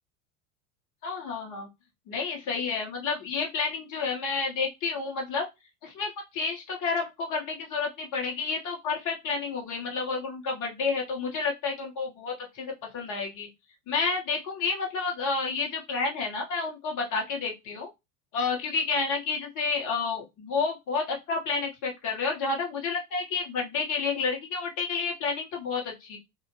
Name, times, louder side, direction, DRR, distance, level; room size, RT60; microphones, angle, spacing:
voice 1, 1.0-1.7 2.1-5.5 5.8-13.5 13.9-17.9 18.3-26.2, left 4 dB, 40° left, 0 dB, 1.3 m, -30 dB
2.7 x 2.0 x 2.9 m, 0.21 s
hypercardioid pair, 80°, 45 cm